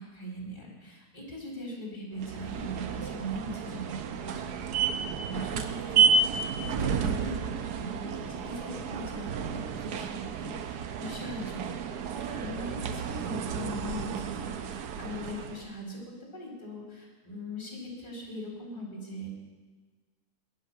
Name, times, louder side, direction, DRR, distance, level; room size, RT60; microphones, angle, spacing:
voice 1, 0.0-16.0 16.3-19.3, left 1 dB, 30° left, -3 dB, 4.1 m, -41 dB
sound 1, 2.2-15.7, right 5 dB, 75° right, 1.4 m, -31 dB
21.0 x 10.0 x 5.7 m, 1.4 s
omnidirectional pair, 1.7 m